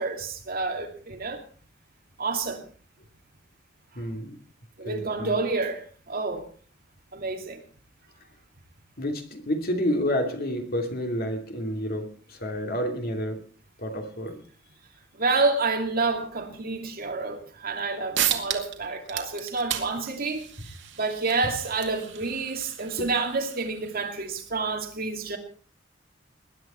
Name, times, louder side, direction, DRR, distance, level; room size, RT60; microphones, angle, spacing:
voice 1, 0.0-1.4 2.2-2.7 3.9-4.0 4.8-6.5 7.1-7.6 15.1-25.4, right 3 dB, 50° right, 2.5 m, -29 dB
voice 2, 4.0-4.4 4.8-5.3 9.0-13.4 13.8-14.4, equal, 50° left, 2.8 m, -29 dB
sound 1, 17.8-17.9 18.1-18.8 19.1-24.2, right 10 dB, 65° right, 2.2 m, -33 dB
20.5 x 11.0 x 4.4 m
head